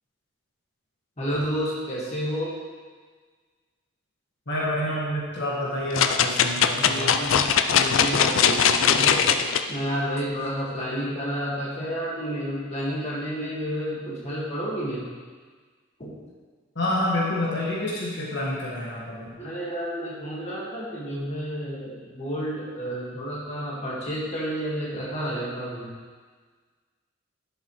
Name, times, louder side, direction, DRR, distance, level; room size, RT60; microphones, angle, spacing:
voice 1, 1.2-2.5 6.8-9.3 9.7-15.1 16.0-16.2 19.4-25.9, equal, 30° left, -6 dB, 1.8 m, -30 dB
voice 2, 4.5-7.2 16.7-19.3, left 1 dB, 55° left, -5 dB, 1.6 m, -28 dB
sound 1, 5.9-9.6 10.2-10.3, left 7 dB, 70° left, 0.4 m, -20 dB
12.0 x 6.9 x 3.2 m, 1.5 s
head